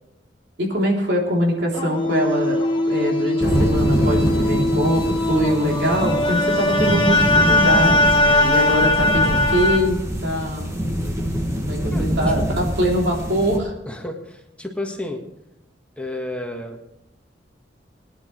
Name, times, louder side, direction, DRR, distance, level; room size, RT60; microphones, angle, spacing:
voice 1, 0.6-2.6 2.9-10.7 11.6-13.7, equal, 70° right, -1 dB, 3.4 m, -23 dB
sound 1, 1.7-9.8, left 2 dB, 30° left, 1.5 m, -20 dB
sound 2, 3.4-13.6, equal, 15° right, 1.8 m, -24 dB
voice 2, 13.9-15.2 16.0-16.8, left 1 dB, 5° left, 1 dB, 1.5 m, -31 dB
21.0 x 10.5 x 3.3 m, 0.85 s
head